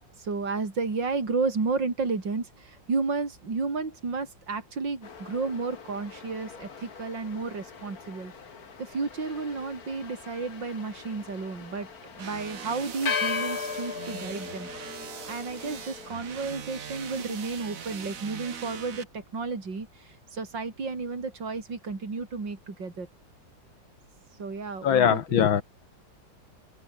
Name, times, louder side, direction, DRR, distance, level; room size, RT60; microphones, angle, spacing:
voice 1, 0.2-8.3 8.8-11.9 12.1-14.7 15.3-23.1 24.4-25.5, right 4 dB, 65° right, 4.6 m, -32 dB
sound 1, 5.0-16.2, left 6 dB, 50° left, 2.3 m, -38 dB
sound 2, 12.2-19.0, right 7 dB, 45° right, 1.6 m, -41 dB
voice 2, 24.8-25.6, left 8 dB, 90° left, 2.3 m, -21 dB
open air
omnidirectional pair, 2.1 m